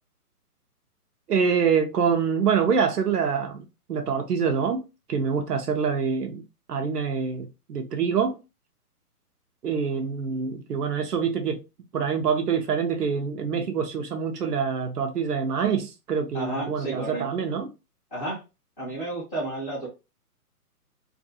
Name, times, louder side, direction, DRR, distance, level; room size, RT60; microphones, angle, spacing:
voice 1, 1.3-6.4 6.7-8.4 9.6-11.6 11.9-17.7, right 6 dB, 80° right, 0.7 m, -25 dB
voice 2, 16.3-17.2 18.1-18.4 18.8-19.9, right 2 dB, 5° left, 0.5 m, -31 dB
2.5 x 2.3 x 2.6 m
figure-of-eight pair, 135°, 47 cm